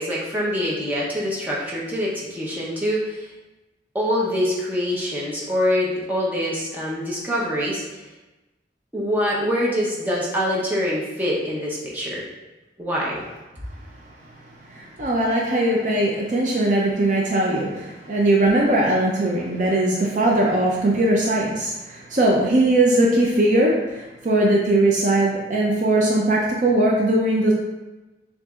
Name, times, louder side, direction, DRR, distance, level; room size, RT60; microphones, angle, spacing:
voice 1, 0.0-3.3 3.9-8.0 8.9-12.2 12.8-13.2, equal, 10° right, -6 dB, 0.8 m, -24 dB
voice 2, 14.7-27.5, right 1 dB, 45° right, -2 dB, 0.5 m, -20 dB
6.7 x 2.6 x 2.4 m, 1.1 s
head